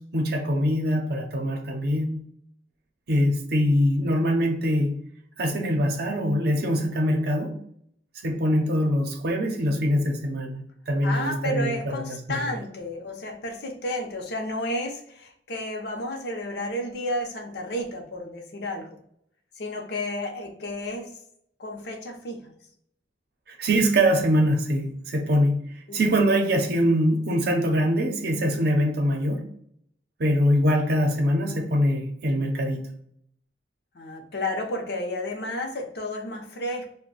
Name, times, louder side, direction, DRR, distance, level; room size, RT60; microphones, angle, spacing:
voice 1, 0.0-2.2 3.1-5.0 5.4-7.6 8.2-12.6 23.5-29.5 30.2-32.9, equal, 60° right, 0.6 m, -23 dB
voice 2, 11.0-19.0 19.6-21.1 21.6-22.5 25.9-26.0 33.9-36.9, left 1 dB, 65° left, 0.7 m, -32 dB
2.5 x 2.1 x 3.9 m
head